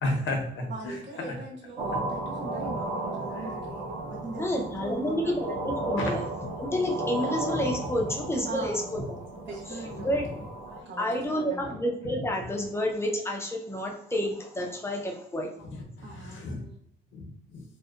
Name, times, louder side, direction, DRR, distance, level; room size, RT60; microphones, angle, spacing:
voice 1, 0.0-1.0 1.9-2.0 3.3-3.5 6.0-6.1 7.5-7.6 9.7-9.9 10.7-10.9 15.7-16.6 17.1-17.6, left 2 dB, 75° left, 2 dB, 0.7 m, -34 dB
voice 2, 0.5-5.3 8.4-8.9 9.5-10.2 10.8-11.8 16.0-16.8, right 3 dB, 65° right, -1 dB, 0.8 m, -41 dB
sound 1, 1.8-10.8, right 2 dB, 85° right, 0.5 m, -34 dB
voice 3, 4.4-6.3 6.6-9.2 9.7-9.8 10.0-10.2 11.0-15.5, equal, 15° left, 0 dB, 0.4 m, -29 dB
2.7 x 2.1 x 2.3 m, 0.72 s
cardioid pair, 140°, 20 cm